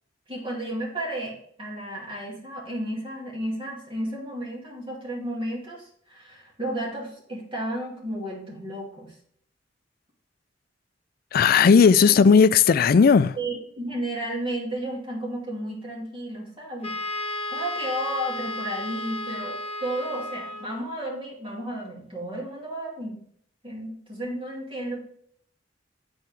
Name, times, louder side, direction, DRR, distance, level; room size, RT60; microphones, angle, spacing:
voice 1, 0.3-9.2 12.1-12.2 13.4-16.9 17.5-23.2 23.6-25.0, right 1 dB, 30° right, 2.6 m, -33 dB
voice 2, 11.3-13.3, left 6 dB, 50° left, 0.4 m, -16 dB
Wind instrument woodwind instrument, 16.8-20.9, left 1 dB, 35° left, 0.9 m, -33 dB
10.0 x 4.4 x 3.4 m
head